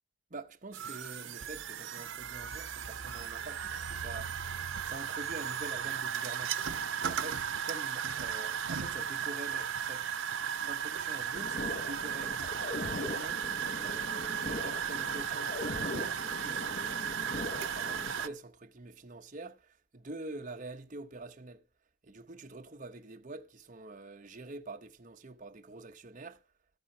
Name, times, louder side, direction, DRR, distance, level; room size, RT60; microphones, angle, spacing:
voice 1, 0.3-4.5 4.8-6.6 7.0-12.5 12.8-21.6 22.0-26.4, right 2 dB, 40° right, 1.0 m, -46 dB
sound 1, 0.7-18.3, right 8 dB, 75° right, 0.8 m, -36 dB
sound 2, 11.3-18.3, left 2 dB, 45° left, 0.7 m, -41 dB
14.5 x 8.7 x 5.5 m
head